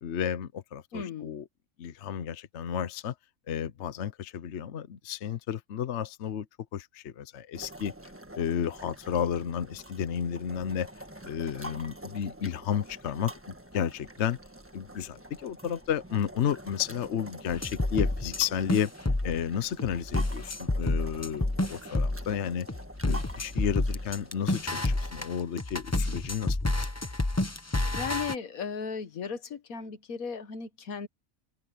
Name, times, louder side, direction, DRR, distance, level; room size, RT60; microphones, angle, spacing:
voice 1, 0.0-1.4 1.8-3.1 3.5-6.5 6.7-7.9 8.3-10.9 11.2-14.4 14.7-18.9 19.2-22.7 23.0-26.9, left 8 dB, 55° left, 1.0 m, -32 dB
voice 2, 0.9-1.4 27.9-31.1, left 6 dB, 75° left, 1.7 m, -36 dB
sound 1, 7.5-25.2, right 1 dB, 10° right, 1.4 m, -46 dB
sound 2, 17.5-18.4 18.7-19.4 19.8-22.3 22.7-28.3, left 2 dB, 15° left, 0.8 m, -29 dB
omnidirectional pair, 1.5 m